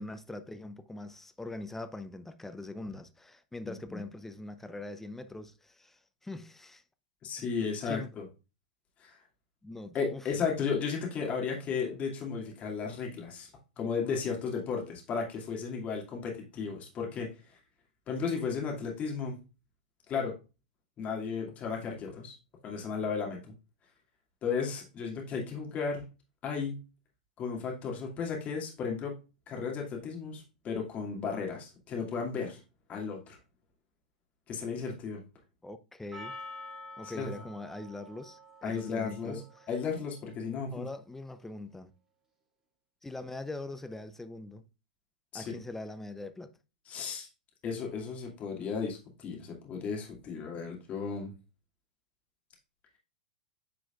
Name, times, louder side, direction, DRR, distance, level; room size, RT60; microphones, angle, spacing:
voice 1, 0.0-6.8 7.9-8.1 9.6-10.2 35.6-36.3 37.0-39.7 40.7-41.9 43.0-44.6 45.3-46.5, left 2 dB, 5° left, 0.7 m, -42 dB
voice 2, 3.7-4.0 7.2-8.2 9.0-9.2 9.9-13.5 13.8-17.3 18.1-19.3 20.1-20.3 21.0-22.3 22.6-23.5 24.4-26.1 26.4-26.8 27.4-29.2 29.5-32.6 32.9-33.4 34.5-35.2 37.0-37.3 38.6-39.4 39.7-40.9 45.3-45.6 46.9-47.3 47.6-51.3, left 5 dB, 30° left, 2.3 m, -34 dB
Percussion, 36.1-40.4, left 1 dB, 15° right, 2.3 m, -48 dB
8.9 x 4.9 x 2.4 m
figure-of-eight pair, 100°, 5 cm